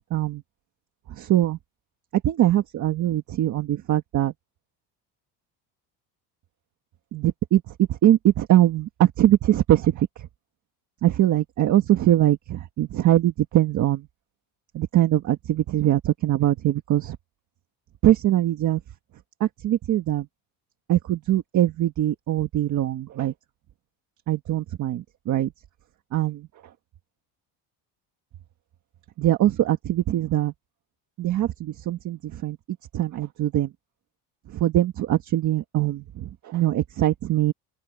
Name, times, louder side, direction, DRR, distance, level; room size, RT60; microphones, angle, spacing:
voice 1, 0.1-0.4 1.1-1.6 2.2-4.3 7.1-7.6 7.9-10.1 11.0-14.1 14.7-17.2 18.0-18.8 19.4-20.3 20.9-23.3 24.3-25.5 26.1-26.5 29.2-30.5 31.2-32.6 32.9-33.7 34.5-37.5, right 13 dB, 40° right, 1.5 m, -22 dB
open air
cardioid pair, 170°, 43 cm